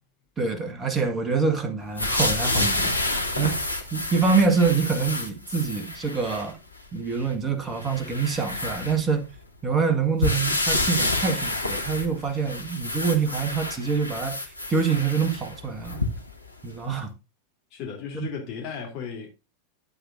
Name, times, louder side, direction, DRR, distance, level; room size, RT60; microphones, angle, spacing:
voice 1, 0.4-3.0 3.4-3.6 3.9-6.6 6.9-9.3 9.6-14.4 14.7-16.0 16.6-17.1 18.1-18.3, right 5 dB, 20° right, 1.6 m, -25 dB
sound 1, 2.0-6.5 7.1-7.2 7.8-9.4 10.2-16.4 17.0-17.1, left 2 dB, 85° left, 1.3 m, -28 dB
voice 2, 17.7-19.3, left 6 dB, 40° left, 2.9 m, -35 dB
12.0 x 8.1 x 2.6 m
figure-of-eight pair, 90°, 0 cm